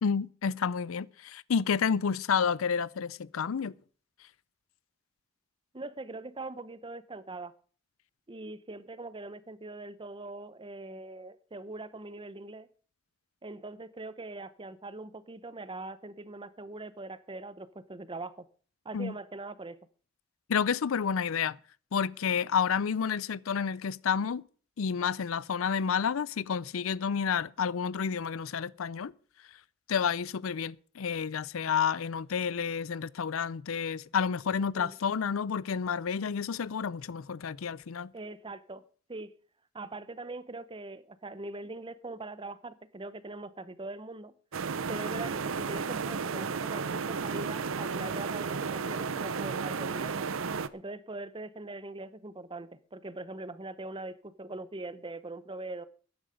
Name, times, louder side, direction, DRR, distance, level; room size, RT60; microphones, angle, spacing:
voice 1, 0.0-3.7 18.9-19.1 20.5-21.6 21.9-24.4 24.8-29.1 29.9-38.1, left 6 dB, 80° left, 0.5 m, -30 dB
voice 2, 5.7-7.5 8.3-12.7 13.4-18.4 18.8-19.8 34.7-34.9 38.1-38.8 39.1-39.3 39.7-44.3 44.9-50.3 50.7-55.9, right 2 dB, 25° right, 0.8 m, -42 dB
sound 1, 44.5-50.7, right 5 dB, 75° right, 0.7 m, -33 dB
14.5 x 10.0 x 5.1 m
head